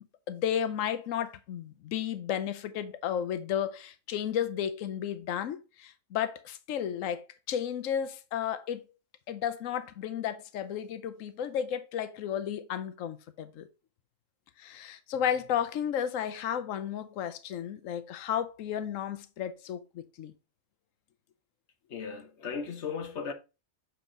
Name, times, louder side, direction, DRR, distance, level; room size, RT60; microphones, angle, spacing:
voice 1, 0.3-8.8 9.3-13.7 14.6-20.3, left 9 dB, 80° left, 1.1 m, -33 dB
voice 2, 21.9-23.3, left 6 dB, 60° left, 1.2 m, -36 dB
7.3 x 4.5 x 3.7 m
omnidirectional pair, 1.4 m